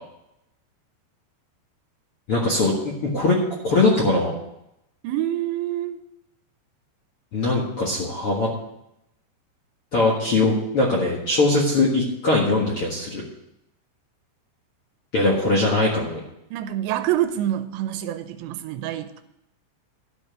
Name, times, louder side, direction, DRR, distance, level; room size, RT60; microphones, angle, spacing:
voice 1, 2.3-3.3 3.6-4.3 7.3-8.5 9.9-13.2 15.1-16.2, left 2 dB, 55° left, -4 dB, 1.5 m, -21 dB
voice 2, 5.0-6.0 16.5-19.2, right 12 dB, 85° right, 9 dB, 2.9 m, -26 dB
12.0 x 5.4 x 7.7 m, 0.82 s
omnidirectional pair, 5.1 m